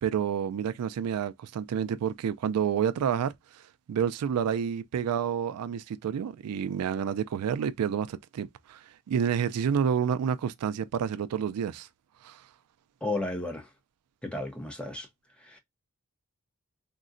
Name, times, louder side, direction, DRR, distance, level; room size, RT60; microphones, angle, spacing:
voice 1, 0.0-11.9 12.2-12.4, right 8 dB, 85° right, 0.3 m, -29 dB
voice 2, 13.0-13.7 14.2-15.1 15.4-15.6, left 2 dB, 5° left, 0.7 m, -33 dB
3.7 x 2.1 x 2.5 m
head